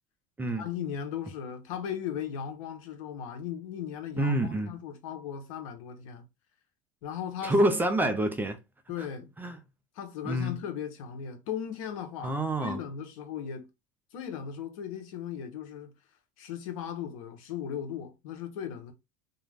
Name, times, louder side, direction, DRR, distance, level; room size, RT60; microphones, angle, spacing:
voice 1, 0.6-6.2 7.0-7.5 8.9-9.3 10.0-13.7 14.1-15.9 16.4-18.9, left 8 dB, 80° left, 0.8 m, -37 dB
voice 2, 4.2-4.8 7.4-8.6 9.4-9.6 10.2-10.6 12.2-12.8, right 1 dB, 10° right, 0.3 m, -27 dB
2.4 x 2.1 x 3.2 m
supercardioid pair, 125°, 17 cm